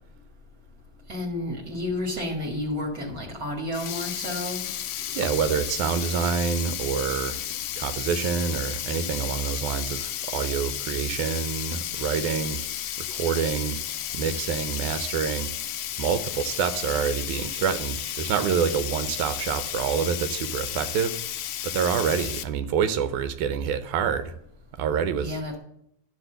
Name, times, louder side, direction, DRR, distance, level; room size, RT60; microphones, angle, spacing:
voice 1, 1.1-4.6 25.2-25.6, left 1 dB, 40° right, 0 dB, 1.7 m, -31 dB
Sink (filling or washing), 3.6-22.4, left 11 dB, 90° left, 1.3 m, -33 dB
voice 2, 5.2-7.4 7.8-12.6 13.0-13.8 14.1-15.5 16.0-21.1 21.6-24.3 24.8-25.3, right 7 dB, 85° right, 11 dB, 2.1 m, -27 dB
12.0 x 4.0 x 7.7 m, 0.74 s
omnidirectional pair, 3.4 m